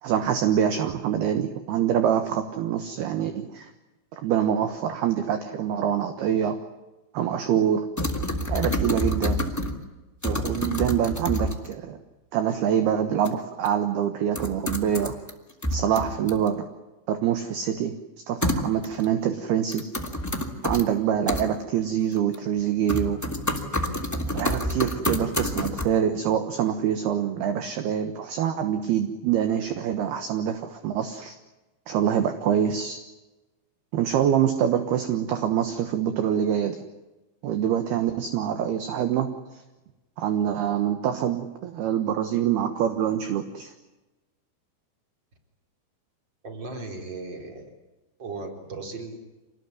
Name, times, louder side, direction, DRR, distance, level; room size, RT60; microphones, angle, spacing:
voice 1, 0.0-3.7 4.1-6.6 7.1-7.9 8.5-9.5 10.2-12.0 12.3-15.2 15.7-16.7 17.1-17.9 18.3-19.8 20.6-23.2 24.3-31.4 31.9-33.0 33.9-36.8 37.4-39.3 40.2-43.7, right 9 dB, 65° right, 8 dB, 2.9 m, -25 dB
sound 1, 8.0-9.8 10.2-11.7 13.2-13.3 13.6-13.7 14.3-15.3 15.6-16.5 18.4-19.0 19.7-20.8 21.3-21.4 22.2-22.6 22.9-25.9, left 1 dB, 5° left, 1.6 m, -27 dB
voice 2, 46.4-47.7 48.2-49.2, right 3 dB, 25° right, 3 dB, 4.2 m, -36 dB
27.0 x 20.0 x 9.8 m, 1.1 s
omnidirectional pair, 5.5 m